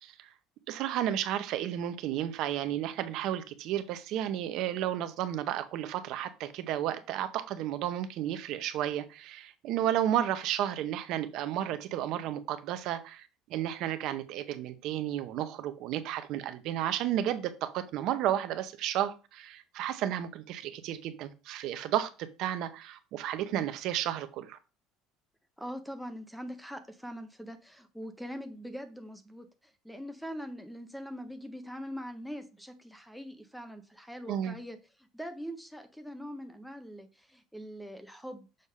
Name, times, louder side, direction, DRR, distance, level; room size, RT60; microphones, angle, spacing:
voice 1, 0.7-24.6 34.3-34.6, right 11 dB, 50° right, 0.7 m, -32 dB
voice 2, 25.6-38.5, equal, ahead, 0.5 m, -42 dB
6.5 x 3.5 x 5.4 m
cardioid pair, 170°, 0 cm